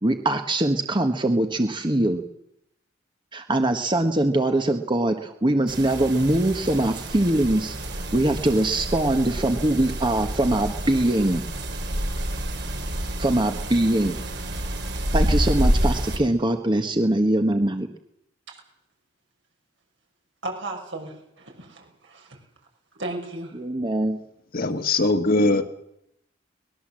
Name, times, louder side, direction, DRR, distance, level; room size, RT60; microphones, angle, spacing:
voice 1, 0.0-2.2 3.3-7.7 8.1-11.4 13.2-14.2 15.1-17.9 23.5-24.2, right 1 dB, 25° right, 1.3 m, -22 dB
sound 1, 5.7-16.2, right 1 dB, 65° right, 3.6 m, -28 dB
voice 2, 20.4-22.4 22.9-23.6, right 2 dB, 80° right, 6.5 m, -35 dB
voice 3, 24.5-25.6, left 2 dB, 50° left, 1.7 m, -21 dB
23.0 x 20.0 x 7.6 m
head